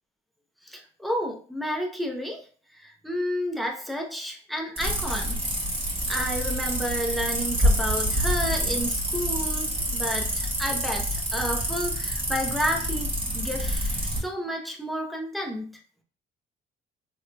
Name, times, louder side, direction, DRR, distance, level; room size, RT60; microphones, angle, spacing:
voice 1, 0.6-2.5 2.7-5.4 6.1-15.7, equal, ahead, 1 dB, 0.8 m, -31 dB
sound 1, 4.8-14.2, equal, 25° right, 1.4 m, -27 dB
3.6 x 3.0 x 2.2 m, 0.40 s
cardioid pair, 90°, 20 cm